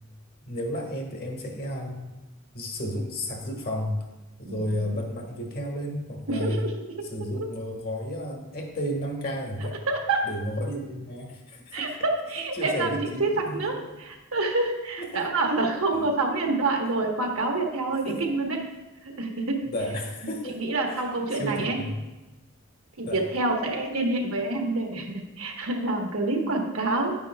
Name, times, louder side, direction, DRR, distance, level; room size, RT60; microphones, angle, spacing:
voice 1, 0.4-2.2 2.5-4.0 4.4-6.7 7.1-9.8 10.2-11.9 12.5-13.9 15.0-15.3 15.9-16.0 17.6-18.2 19.7-21.1 21.3-22.0 23.1-23.2, equal, 45° left, 1 dB, 1.5 m, -32 dB
voice 2, 6.3-6.7 7.0-7.1 7.4-7.5 9.9-10.3 11.7-18.6 19.0-19.6 20.2-21.8 23.0-27.1, right 2 dB, 75° right, 1 dB, 1.3 m, -27 dB
9.6 x 9.0 x 2.3 m, 1.1 s
head